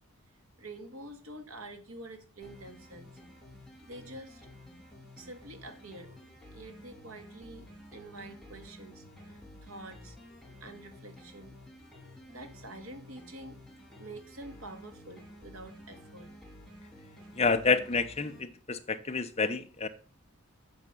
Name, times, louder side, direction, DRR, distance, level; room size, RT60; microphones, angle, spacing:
voice 1, 0.6-3.1 3.8-4.5 5.2-6.1 6.5-7.7 7.9-10.2 10.6-11.6 12.3-13.6 14.0-16.3 17.2-17.3, right 2 dB, 75° right, 5 dB, 2.1 m, -47 dB
sound 1, 2.4-18.4, left 1 dB, ahead, 2.7 m, -52 dB
voice 2, 17.4-19.9, left 4 dB, 30° left, 8 dB, 0.8 m, -29 dB
8.8 x 6.6 x 6.8 m, 0.39 s
head